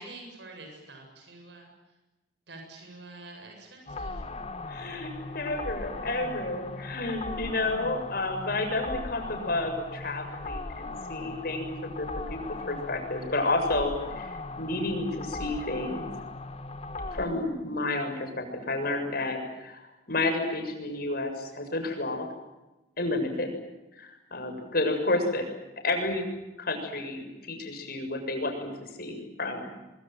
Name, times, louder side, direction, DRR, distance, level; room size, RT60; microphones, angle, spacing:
voice 1, 0.0-1.7 2.5-4.2, right 2 dB, 70° right, 3 dB, 7.6 m, -46 dB
sound 1, 3.9-17.3, left 2 dB, 35° left, 1.5 m, -38 dB
voice 2, 4.7-12.4 12.7-14.3 14.6-16.1 17.1-22.3 23.0-23.5 24.0-25.5 25.8-26.3 26.6-28.7 29.0-29.7, left 2 dB, 55° left, 4 dB, 7.2 m, -31 dB
24.0 x 23.5 x 9.3 m, 1.0 s
head